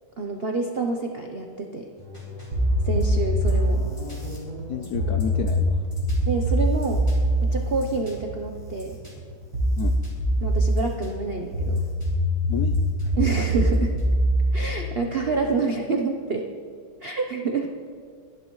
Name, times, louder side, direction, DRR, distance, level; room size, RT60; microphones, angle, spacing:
voice 1, 0.2-1.9 2.8-3.8 6.3-7.1 7.4-9.0 10.4-11.8 13.2-13.9 14.5-16.5 17.0-17.7, right 4 dB, 90° right, 2 dB, 0.5 m, -27 dB
sound 1, 2.0-14.5, equal, 15° left, 3.6 m, -42 dB
sound 2, 2.5-3.8 4.9-8.7 9.5-10.8 11.5-15.5, equal, 70° right, 2.9 m, -23 dB
voice 2, 4.7-5.8 9.8-9.9 12.5-12.7, left 8 dB, 75° left, 6 dB, 0.8 m, -30 dB
23.0 x 11.5 x 3.1 m, 2.2 s
omnidirectional pair, 2.3 m